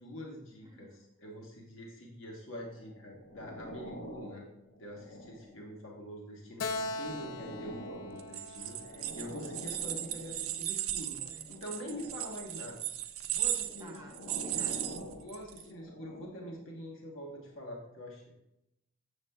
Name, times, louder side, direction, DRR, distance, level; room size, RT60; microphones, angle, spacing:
voice 1, 0.0-4.5 4.8-12.8 13.3-14.0 15.2-18.2, left 1 dB, 65° left, -1 dB, 1.2 m, -45 dB
voice 2, 0.6-1.0 11.2-11.6 13.8-15.1, right 1 dB, 15° right, 1 dB, 0.5 m, -52 dB
sound 1, 2.7-5.8 6.4-10.6 11.4-12.5 13.4-16.7 17.4-17.5, equal, 45° left, 0.9 m, -47 dB
Keyboard (musical), 6.6-10.1, left 2 dB, 85° left, 0.4 m, -41 dB
sound 2, 8.2-15.6, right 12 dB, 80° right, 0.4 m, -36 dB
7.4 x 7.0 x 2.3 m, 0.85 s
head